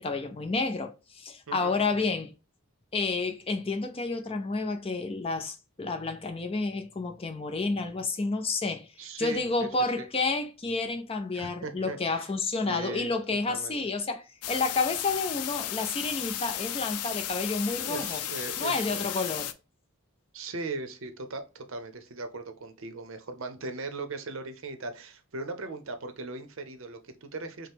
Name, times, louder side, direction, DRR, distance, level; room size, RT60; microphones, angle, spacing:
voice 1, 0.0-2.3 2.9-8.9 9.2-18.2 18.6-19.5, left 3 dB, 25° left, 0.4 m, -30 dB
voice 2, 1.5-2.1 9.0-9.7 10.0-10.1 11.3-12.3 12.7-13.1 13.5-13.8 17.8-19.2 20.3-27.7, right 3 dB, 60° right, 0.6 m, -39 dB
sound 1, 14.4-19.5, left 11 dB, 85° left, 0.4 m, -34 dB
5.4 x 2.0 x 3.5 m
head